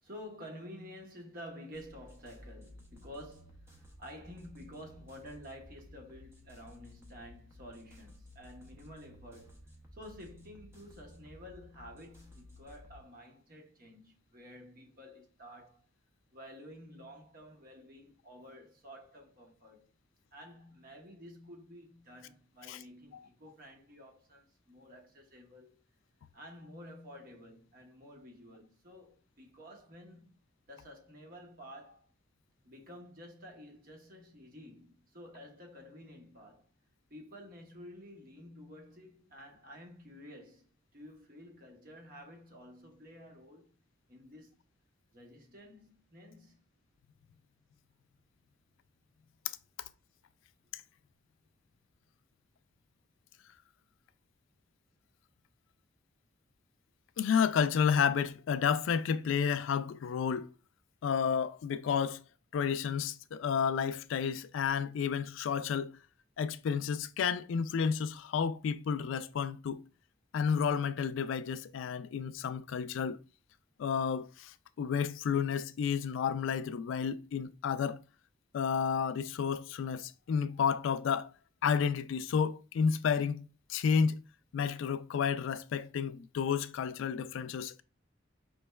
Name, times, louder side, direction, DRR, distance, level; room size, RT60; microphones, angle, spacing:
voice 1, 0.0-3.7 4.0-9.6 9.9-15.9 16.3-19.9 20.3-25.8 26.3-30.3 30.7-32.1 32.6-36.7 37.1-40.7 40.9-43.7 44.1-44.6 45.1-46.6, equal, 45° right, 0.9 m, -51 dB
sound 1, 1.7-13.0, left 1 dB, 15° right, 0.6 m, -55 dB
voice 2, 57.2-60.5 61.0-62.2 62.5-65.9 66.4-69.8 70.3-73.2 73.8-78.0 78.5-81.3 81.6-84.2 84.5-87.8, left 6 dB, 75° left, 0.3 m, -31 dB
5.0 x 3.1 x 2.2 m
head